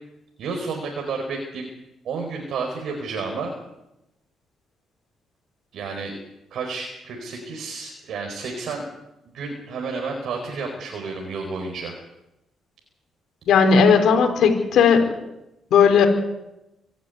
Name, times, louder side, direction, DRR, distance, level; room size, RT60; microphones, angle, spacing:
voice 1, 0.4-1.6 2.0-3.5 5.7-6.1 6.5-8.8 9.3-11.9, right 4 dB, 70° right, 2 dB, 4.6 m, -31 dB
voice 2, 13.5-15.0 15.7-16.1, left 6 dB, 75° left, 4 dB, 4.8 m, -16 dB
25.0 x 11.5 x 9.6 m, 0.91 s
cardioid pair, 90°, 0 cm